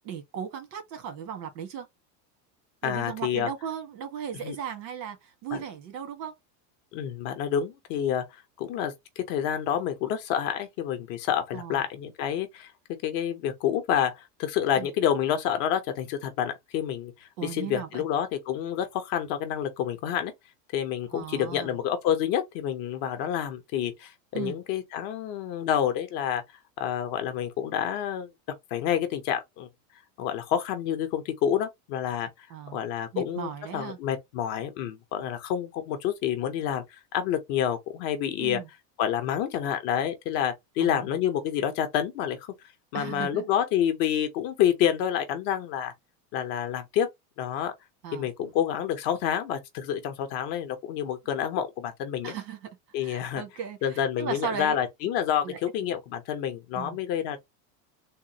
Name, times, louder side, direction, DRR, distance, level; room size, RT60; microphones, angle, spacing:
voice 1, 0.0-1.9 2.8-6.3 11.5-11.8 14.8-14.9 17.4-18.0 21.1-21.8 24.3-24.6 32.5-32.8 33.1-34.0 38.4-38.7 40.8-41.1 42.9-43.4 48.0-48.3 52.2-52.7 53.0-54.8 55.4-55.6 56.7-57.0, right 8 dB, 90° right, 1.6 m, -36 dB
voice 2, 2.8-3.5 4.4-4.6 5.5-5.6 6.9-12.7 13.0-20.3 20.7-26.4 26.8-28.3 28.7-29.7 30.2-32.3 32.7-38.6 39.0-42.5 42.9-45.9 46.3-47.1 47.4-47.7 48.1-52.3 52.9-53.4 53.8-57.4, left 9 dB, 35° left, 0.6 m, -28 dB
3.5 x 2.3 x 2.8 m
supercardioid pair, 175°, 49 cm